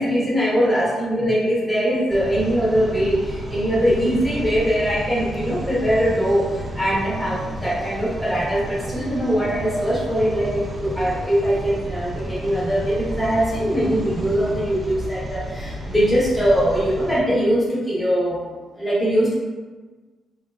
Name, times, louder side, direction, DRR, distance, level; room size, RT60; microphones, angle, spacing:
voice 1, 0.0-18.4 18.7-19.3, equal, 10° left, -7 dB, 0.8 m, -21 dB
sound 1, 2.1-17.2, right 1 dB, 20° right, 0.4 m, -32 dB
3.1 x 2.3 x 2.3 m, 1.3 s
cardioid pair, 115°, 0 cm